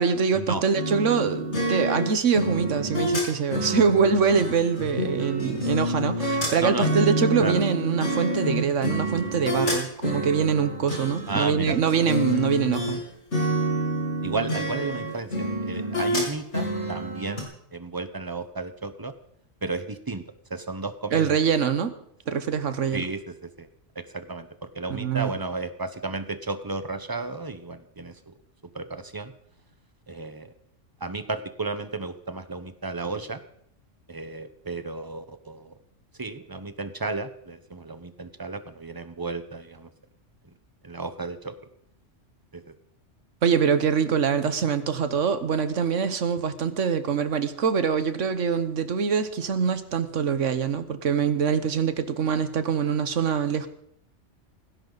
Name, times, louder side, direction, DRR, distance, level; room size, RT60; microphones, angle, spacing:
voice 1, 0.0-13.0 21.1-21.9 22.3-23.0 24.9-25.3 43.4-53.7, right 6 dB, 80° right, 11 dB, 1.4 m, -24 dB
sound 1, 0.7-13.0 13.3-17.4, right 1 dB, 70° left, 4.0 m, -28 dB
voice 2, 6.6-6.9 7.4-7.6 11.3-11.8 14.2-19.1 19.6-20.2 20.5-21.4 22.9-23.7 23.9-28.3 28.7-29.3 30.1-30.5 31.0-33.4 34.1-35.7 36.2-39.9 40.8-41.5 42.5-42.7, right 3 dB, 20° right, 10 dB, 0.9 m, -33 dB
18.5 x 16.0 x 4.0 m, 0.70 s
omnidirectional pair, 1.3 m